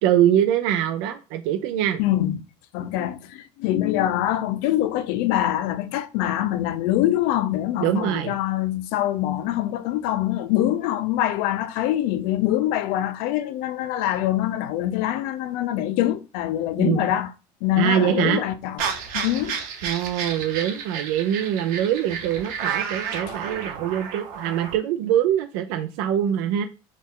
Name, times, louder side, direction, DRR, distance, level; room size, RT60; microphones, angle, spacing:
voice 1, 0.0-2.0 7.8-8.4 16.8-17.1 17.8-18.4 19.8-26.6, right 10 dB, 85° right, 0.4 m, -23 dB
voice 2, 2.0-2.4 2.7-17.3 17.6-18.8 19.1-19.6, left 13 dB, 75° left, 0.5 m, -24 dB
sound 1, 18.8-24.8, right 7 dB, 65° right, 0.9 m, -31 dB
4.2 x 2.4 x 3.6 m
cardioid pair, 130°, 15 cm